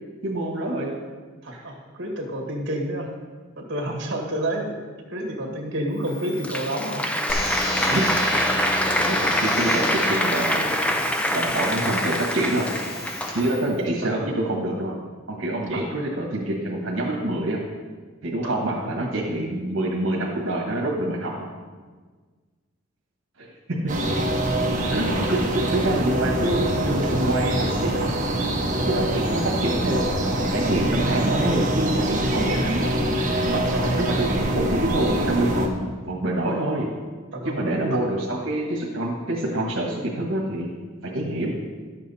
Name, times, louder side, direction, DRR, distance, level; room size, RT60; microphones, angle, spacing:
voice 1, 0.2-0.9 1.5-1.6 7.9-8.1 9.0-10.7 11.3-12.7 13.3-15.0 15.3-17.6 18.2-21.5 23.4-23.9 24.9-28.1 28.8-32.9 33.9-36.9 37.4-40.7 41.0-41.5, right 1 dB, 75° right, -3 dB, 1.5 m, -26 dB
voice 2, 1.4-3.1 3.6-7.1 14.0-14.1 15.7-16.0 18.4-18.8 33.5-33.9 37.3-38.0, right 1 dB, 55° right, 0 dB, 1.9 m, -30 dB
Applause, 6.1-13.7, left 1 dB, 5° left, 0.6 m, -25 dB
sound 1, 7.3-13.3, left 1 dB, 70° left, 2.3 m, -32 dB
sound 2, 23.9-35.7, right 1 dB, 40° right, 1.3 m, -24 dB
12.0 x 7.6 x 4.2 m, 1.4 s
head